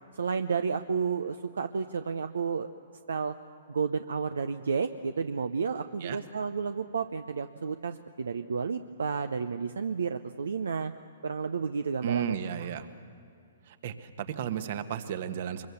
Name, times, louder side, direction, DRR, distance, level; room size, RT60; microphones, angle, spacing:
voice 1, 0.1-2.7 3.1-3.4 3.7-10.9 11.2-12.7, right 5 dB, 80° right, 9 dB, 0.7 m, -31 dB
voice 2, 12.0-12.9 13.7-15.7, right 9 dB, 55° right, 9 dB, 1.5 m, -34 dB
23.5 x 23.0 x 7.1 m, 2.5 s
hypercardioid pair, 125°, 0 cm